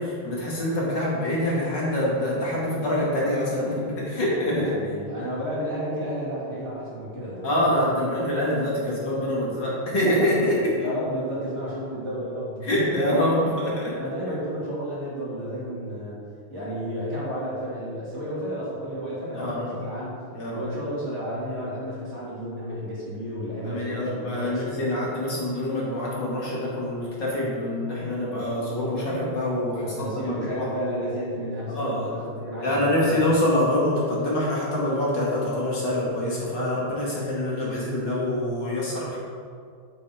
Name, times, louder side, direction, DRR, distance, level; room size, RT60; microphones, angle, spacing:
voice 1, 0.0-4.8 7.4-10.7 12.6-13.9 19.3-19.8 20.3-20.6 23.6-30.6 31.7-32.1 32.6-39.2, left 1 dB, 55° left, -6 dB, 2.7 m, -25 dB
voice 2, 4.5-7.9 10.4-13.2 14.0-16.2 16.5-20.2 20.5-24.7 28.5-28.6 29.8-33.2, equal, 30° right, -9 dB, 3.2 m, -32 dB
8.5 x 8.3 x 4.9 m, 2.2 s
omnidirectional pair, 2.3 m